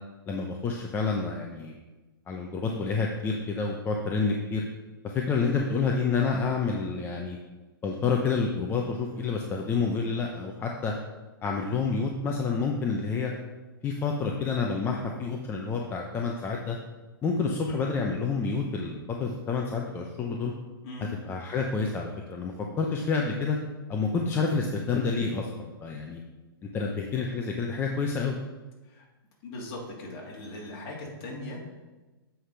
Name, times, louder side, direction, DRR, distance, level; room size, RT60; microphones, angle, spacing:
voice 1, 0.3-1.7 2.3-4.6 5.0-7.4 7.8-10.9 11.4-13.3 13.8-16.8 17.2-20.5 21.2-23.6 23.9-26.2 26.6-28.4, left 4 dB, 15° left, 1 dB, 0.7 m, -28 dB
voice 2, 29.4-31.7, left 2 dB, 40° left, -2 dB, 2.8 m, -39 dB
7.8 x 5.0 x 5.7 m, 1.2 s
hypercardioid pair, 140°, 13 cm